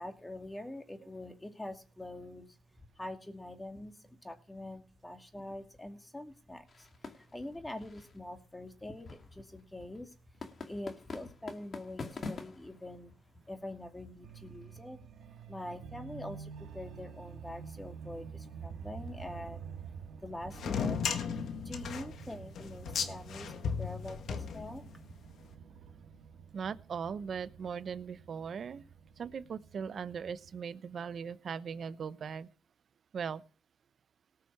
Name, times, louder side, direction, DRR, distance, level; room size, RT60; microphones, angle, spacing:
voice 1, 0.0-2.6 3.0-10.4 10.7-13.1 13.5-15.0 15.5-19.6 20.2-24.9, left 1 dB, 10° left, 5 dB, 2.5 m, -44 dB
sound 1, 6.7-15.3, left 4 dB, 40° left, 2.4 m, -48 dB
sound 2, 14.2-30.6, right 7 dB, 70° right, 3.2 m, -49 dB
sound 3, 20.5-25.1, left 6 dB, 65° left, 1.7 m, -35 dB
voice 2, 26.5-28.8 29.2-32.5 33.1-33.4, right 6 dB, 50° right, 14 dB, 0.8 m, -39 dB
18.5 x 6.5 x 5.9 m, 0.37 s
cardioid pair, 90°, 0 cm